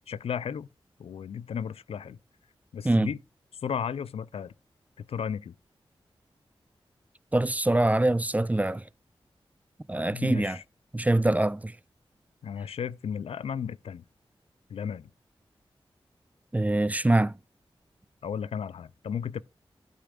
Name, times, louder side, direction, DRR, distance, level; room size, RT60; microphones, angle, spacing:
voice 1, 0.1-0.7 1.0-2.2 2.7-3.2 3.6-4.5 5.0-5.5 10.1-10.6 12.4-14.0 14.7-15.1 18.2-19.4, left 7 dB, 80° left, 0.4 m, -34 dB
voice 2, 7.3-8.8 9.9-10.6 10.9-11.7 16.5-17.3, right 1 dB, 15° right, 0.4 m, -24 dB
12.0 x 8.2 x 2.4 m
cardioid pair, 50°, 10 cm